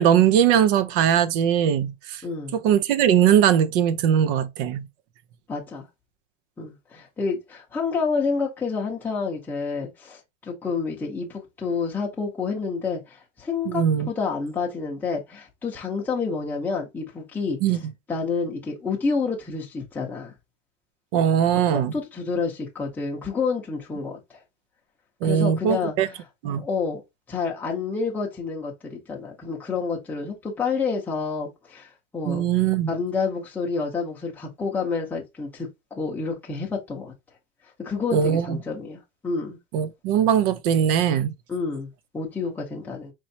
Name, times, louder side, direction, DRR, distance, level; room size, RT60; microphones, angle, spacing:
voice 1, 0.0-2.2 2.5-4.9 13.7-14.1 17.6-17.8 21.1-21.9 25.2-26.1 26.4-26.6 32.3-32.9 38.1-38.6 39.7-41.3, right 9 dB, 50° right, 0.5 m, -20 dB
voice 2, 2.2-2.6 5.5-5.9 6.6-17.6 18.1-20.3 21.9-24.2 25.2-26.2 26.5-27.0 27.3-32.5 32.9-37.1 37.8-39.6 41.5-43.1, left 4 dB, 5° left, 0.7 m, -29 dB
4.4 x 3.0 x 2.7 m
supercardioid pair, 160°, 37 cm